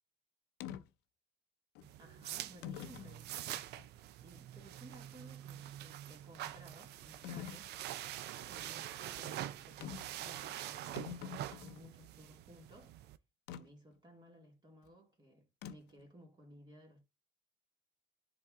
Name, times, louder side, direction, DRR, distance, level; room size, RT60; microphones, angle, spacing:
sound 1, 0.6-0.8 1.8-1.9 2.6-3.2 3.8-3.9 7.2-7.7 9.8-10.2 10.5-10.6 10.8-11.9 13.5-13.6 15.6-16.0, left 9 dB, 90° left, 0.6 m, -45 dB
sound 2, 1.8-13.2, right 12 dB, 75° right, 0.5 m, -45 dB
voice 1, 2.0-3.7 4.2-7.7 8.5-13.0 13.5-17.0, equal, 25° right, 2.0 m, -58 dB
10.5 x 3.9 x 3.7 m
cardioid pair, 110°, 17 cm